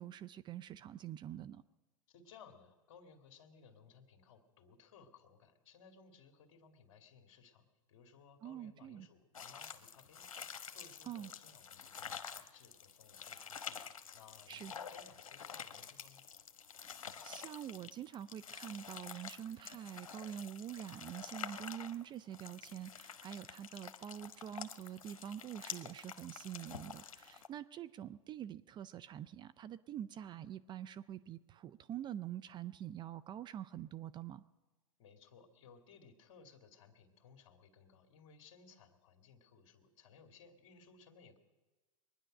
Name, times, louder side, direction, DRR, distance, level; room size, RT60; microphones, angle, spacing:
voice 1, 0.0-1.6 8.4-9.1 11.0-11.3 14.5-14.7 16.8-34.4, right 10 dB, 25° right, 14 dB, 0.4 m, -46 dB
voice 2, 2.1-16.2 35.0-41.4, left 5 dB, 55° left, 5 dB, 2.3 m, -61 dB
sound 1, 9.3-27.5, left 7 dB, 90° left, 1.0 m, -49 dB
22.5 x 10.0 x 6.5 m, 1.2 s
hypercardioid pair, 110°, 17 cm